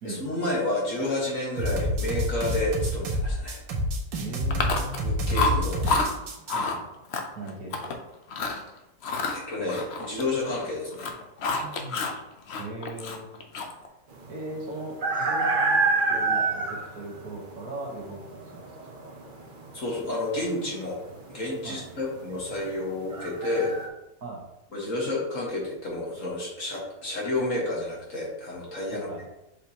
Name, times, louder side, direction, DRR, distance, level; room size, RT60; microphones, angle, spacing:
voice 1, 0.0-3.6 5.0-5.9 9.3-11.1 19.7-21.0 21.3-23.7 24.7-29.1, left 2 dB, 45° left, -4 dB, 2.0 m, -30 dB
sound 1, 1.6-6.6, equal, 90° right, 1.8 m, -28 dB
voice 2, 4.2-5.1 6.5-7.0 7.4-8.0 11.5-12.1 12.6-13.3 13.7-13.9 14.3-18.9 21.6-21.8 24.2-24.4 28.9-29.3, right 2 dB, 60° right, -2 dB, 1.7 m, -39 dB
Chewing mastication, 4.5-5.1 5.3-6.1 6.5-6.8 7.1-8.0 8.3-8.6 9.0-10.7 10.9-12.2 12.5-13.9, left 3 dB, 65° left, 0.6 m, -29 dB
sound 2, 14.1-23.9, right 3 dB, 40° right, 0.7 m, -28 dB
6.9 x 5.0 x 2.9 m, 0.92 s
omnidirectional pair, 2.0 m